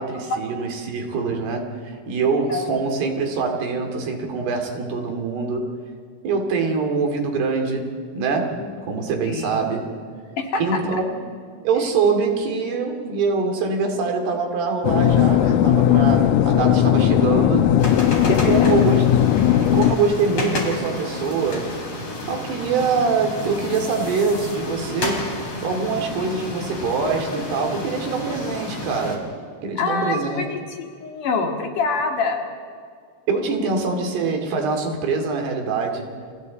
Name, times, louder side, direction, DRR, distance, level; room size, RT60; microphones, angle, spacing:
voice 1, 0.0-5.7 6.2-9.9 10.6-11.2 11.6-17.8 18.3-19.1 19.5-21.7 22.3-29.3 29.6-30.5 33.3-36.1, right 4 dB, 85° right, 3 dB, 4.8 m, -24 dB
voice 2, 9.3-9.7 10.4-10.8 18.3-18.7 29.8-30.6 31.0-32.4, left 4 dB, 55° left, 2 dB, 3.5 m, -25 dB
sound 1, 14.8-20.0, left 11 dB, 80° left, 1.8 m, -17 dB
sound 2, 17.8-29.2, left 2 dB, 40° left, 4.8 m, -30 dB
30.0 x 29.5 x 4.2 m, 2.1 s
omnidirectional pair, 4.6 m